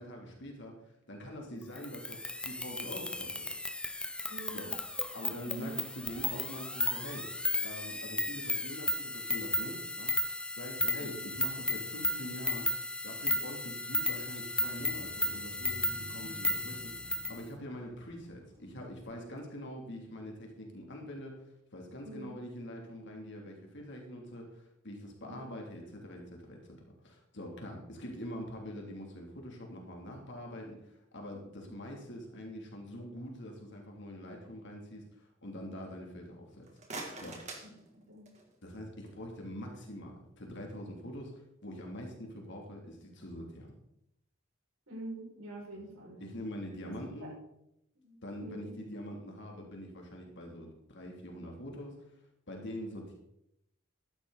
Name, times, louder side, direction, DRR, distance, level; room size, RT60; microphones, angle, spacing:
voice 1, 0.0-3.5 4.5-4.7 5.1-7.3 7.6-10.1 10.5-26.8 27.0-37.4 38.6-43.7 45.7-45.9 46.2-47.3 48.2-52.1 52.5-53.1, equal, 60° left, 0 dB, 3.0 m, -44 dB
sound 1, 1.8-17.4, left 1 dB, 5° left, 0.7 m, -34 dB
voice 2, 4.3-4.7 5.5-5.7 11.0-11.1 22.0-22.3 25.2-25.4 37.6-37.7 38.1-38.2 44.9-46.3 47.2-47.3 47.9-48.7, right 1 dB, 70° right, -3 dB, 6.0 m, -45 dB
sound 2, 14.2-19.2, equal, 20° right, 1.6 m, -52 dB
sound 3, 36.5-38.6, right 3 dB, 35° right, 2.6 m, -45 dB
14.5 x 11.5 x 4.1 m, 0.80 s
head